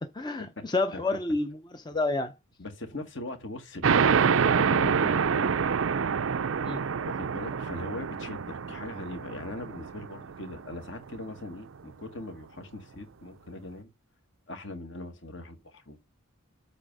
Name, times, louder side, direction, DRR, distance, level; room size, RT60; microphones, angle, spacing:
voice 1, 0.1-2.3 6.6-6.8, left 2 dB, 20° left, 0.6 m, -29 dB
voice 2, 2.6-5.5 7.0-13.9 14.5-16.0, left 2 dB, 55° left, 1.9 m, -40 dB
sound 1, 3.8-11.0, right 6 dB, 70° right, 0.5 m, -26 dB
8.3 x 3.4 x 5.4 m
head